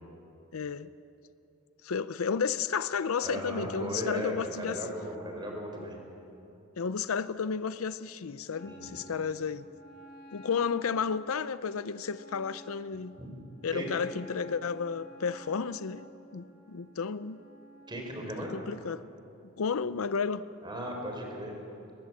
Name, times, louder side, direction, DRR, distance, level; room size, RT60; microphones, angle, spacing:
voice 1, 0.5-0.9 1.8-4.8 6.8-9.6 10.3-13.2 13.6-16.1 16.3-17.4 18.5-19.1 19.6-20.5, left 6 dB, 75° left, 0.6 m, -32 dB
voice 2, 3.2-6.0 8.6-9.0 13.2-13.3 13.7-13.9 17.9-18.5 20.6-21.5, equal, 20° right, 4.4 m, -36 dB
Wind instrument woodwind instrument, 8.5-18.1, equal, 45° left, 2.1 m, -53 dB
22.0 x 19.0 x 7.7 m
head